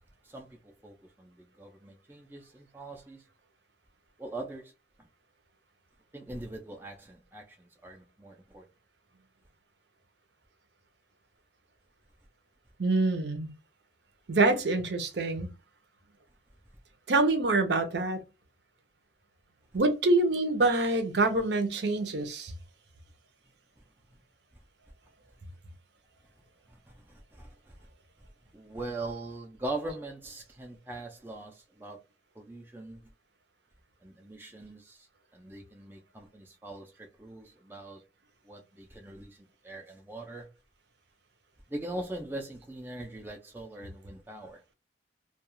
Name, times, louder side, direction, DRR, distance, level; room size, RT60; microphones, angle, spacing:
voice 1, 0.2-0.6 0.8-3.2 4.2-4.7 6.1-8.7 26.7-27.7 28.5-32.0 32.4-33.0 34.0-35.1 35.3-38.0 38.4-39.4 39.6-40.5 41.7-44.6, right 2 dB, 10° right, 0.4 m, -41 dB
voice 2, 12.8-13.5 14.3-15.5 17.1-18.2 19.7-22.5, right 2 dB, 65° right, 0.7 m, -26 dB
2.3 x 2.3 x 3.0 m
head